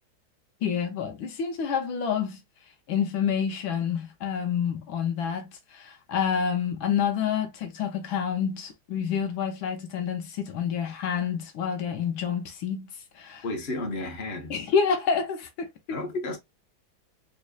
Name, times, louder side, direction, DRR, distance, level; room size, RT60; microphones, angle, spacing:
voice 1, 0.6-2.4 2.9-12.9 13.2-13.4 14.5-16.0, left 7 dB, 75° left, 1.7 m, -28 dB
voice 2, 13.4-14.7 15.9-16.4, left 2 dB, 35° left, 1.2 m, -32 dB
4.2 x 3.1 x 2.3 m
omnidirectional pair, 2.2 m